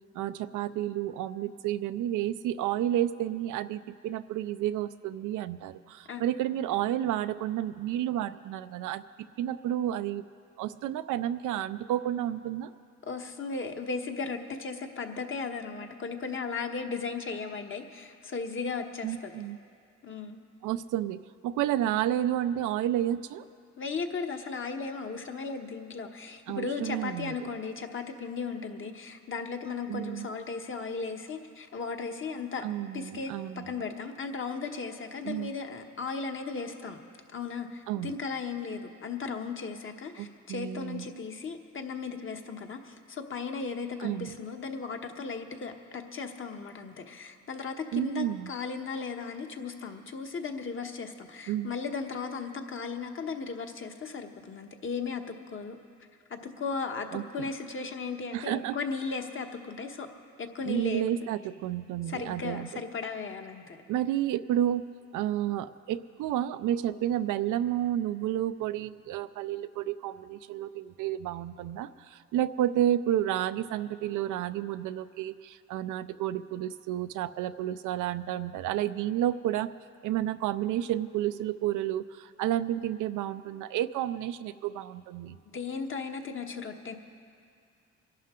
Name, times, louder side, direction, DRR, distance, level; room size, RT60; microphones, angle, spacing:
voice 1, 0.1-9.0 9.4-10.3 10.6-12.7 19.0-19.6 20.6-23.5 26.5-27.5 29.9-30.3 32.6-33.9 35.2-35.5 37.9-38.2 40.2-41.1 44.0-44.4 47.9-48.5 51.5-51.7 57.1-57.5 58.3-58.8 60.6-62.8 63.9-64.9 65.1-79.7 80.0-85.4, right 12 dB, 85° right, 12 dB, 0.5 m, -31 dB
voice 2, 13.0-19.4 20.0-20.4 23.8-32.7 32.9-33.3 33.7-37.0 37.3-55.8 56.3-60.1 60.4-61.2 62.1-63.8 85.5-87.0, left 5 dB, 45° left, 4 dB, 1.2 m, -36 dB
25.0 x 11.5 x 3.8 m, 2.4 s
cardioid pair, 90°, 30 cm